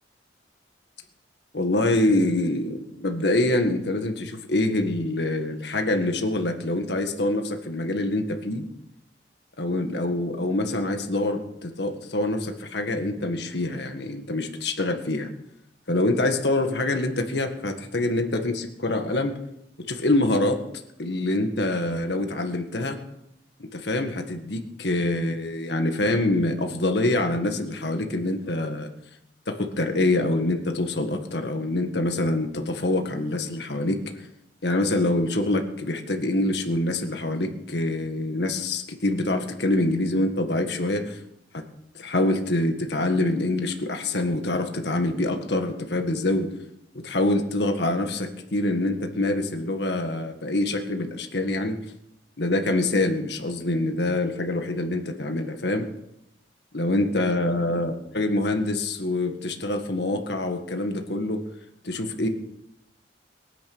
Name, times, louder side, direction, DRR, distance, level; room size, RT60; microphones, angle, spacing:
voice 1, 1.5-8.7 9.6-15.3 15.9-19.3 19.9-20.6 21.0-23.0 23.6-28.9 29.5-34.0 34.6-41.2 41.5-41.6 42.0-46.5 47.0-51.8 52.4-55.9 56.7-61.4 61.8-62.3, left 2 dB, 70° left, 5 dB, 1.7 m, -25 dB
21.5 x 10.0 x 6.2 m, 0.82 s
head